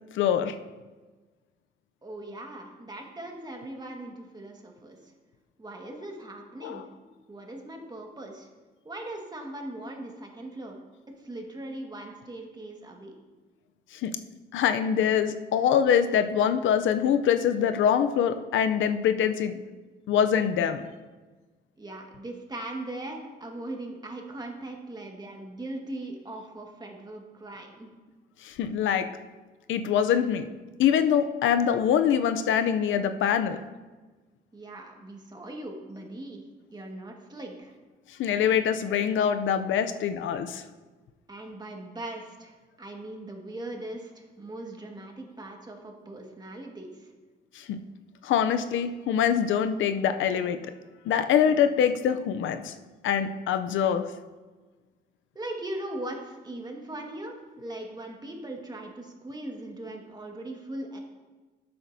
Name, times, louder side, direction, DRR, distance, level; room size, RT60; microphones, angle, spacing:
voice 1, 0.1-0.6 6.6-6.8 13.9-14.1 14.5-19.6 20.1-20.9 28.4-29.1 29.7-30.5 30.8-33.6 38.2-40.6 47.5-47.8 48.2-50.6 51.1-52.7 53.0-54.1, left 8 dB, 75° left, 9 dB, 0.6 m, -24 dB
voice 2, 2.0-5.1 5.6-6.8 7.3-8.5 8.9-10.8 11.1-13.1 21.8-27.9 34.5-36.4 36.7-37.7 41.3-47.1 51.4-51.5 55.4-61.0, right 1 dB, 20° right, 1 dB, 1.7 m, -39 dB
12.5 x 7.8 x 2.7 m, 1.3 s
cardioid pair, 90°, 20 cm